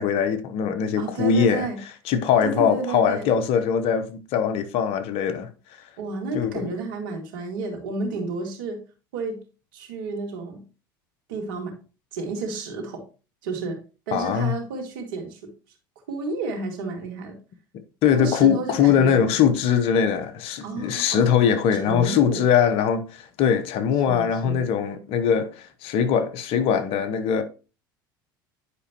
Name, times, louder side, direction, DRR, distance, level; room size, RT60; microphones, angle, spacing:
voice 1, 0.0-1.7 2.1-5.5 6.3-6.7 14.1-14.5 18.0-27.4, left 7 dB, 60° left, 0.9 m, -21 dB
voice 2, 1.0-1.8 2.4-3.3 6.0-8.8 9.1-9.4 9.7-10.6 11.3-11.7 12.1-13.0 13.4-13.8 14.1-15.5 16.1-17.4 18.1-19.3 20.6-22.4 24.1-24.6, right 3 dB, 75° right, 2.2 m, -31 dB
9.8 x 5.2 x 3.0 m
hypercardioid pair, 80°, 11 cm